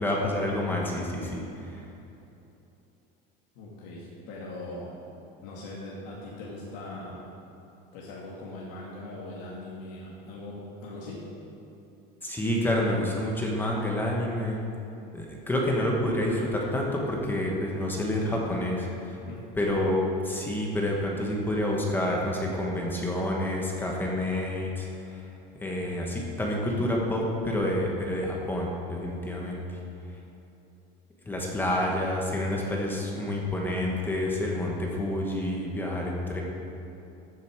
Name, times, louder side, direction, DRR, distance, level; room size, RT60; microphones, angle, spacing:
voice 1, 0.0-1.4 12.2-14.6 15.1-18.9 19.6-20.0 20.3-24.9 25.6-29.6 31.3-36.4, left 1 dB, 10° left, -1 dB, 1.2 m, -28 dB
voice 2, 3.6-4.9 5.4-7.2 7.9-11.2 19.3-19.4 19.7-19.9, left 2 dB, 85° left, -5 dB, 2.2 m, -40 dB
14.5 x 6.9 x 4.6 m, 2.9 s
cardioid pair, 170°, 21 cm